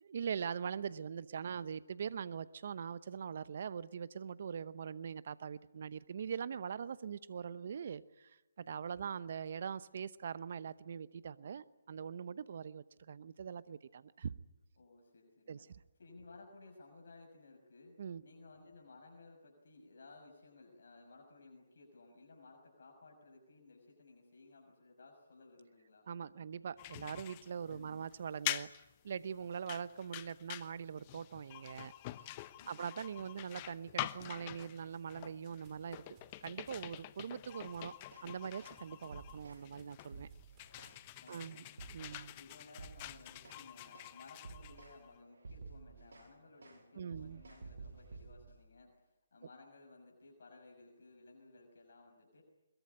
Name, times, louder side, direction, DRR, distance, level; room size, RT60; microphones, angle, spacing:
voice 1, 0.1-14.3 15.5-15.7 18.0-18.2 26.1-28.7 29.0-31.9 32.7-37.9 38.2-40.3 41.3-41.6 41.9-42.3 47.0-47.4, right 7 dB, 50° right, 16 dB, 0.9 m, -42 dB
voice 2, 14.7-15.7 16.0-17.9 18.2-26.1 27.7-28.1 32.6-33.0 41.2-41.8 42.4-52.4, left 3 dB, 60° left, 2 dB, 6.1 m, -58 dB
sound 1, 26.8-45.2, left 16 dB, 30° left, 0.9 m, -46 dB
sound 2, 35.5-41.3, right 3 dB, 25° right, 5.4 m, -69 dB
sound 3, 38.0-38.3 38.6-38.8 39.1-39.7 40.0-41.0 41.3-41.5 41.8-42.3 42.7-43.7 43.9-44.2 44.4-45.0 45.3-46.3 46.6-46.8 47.1-48.6, right 4 dB, 65° right, 7.1 m, -52 dB
22.5 x 22.0 x 9.7 m, 1.0 s
figure-of-eight pair, 145°, 0 cm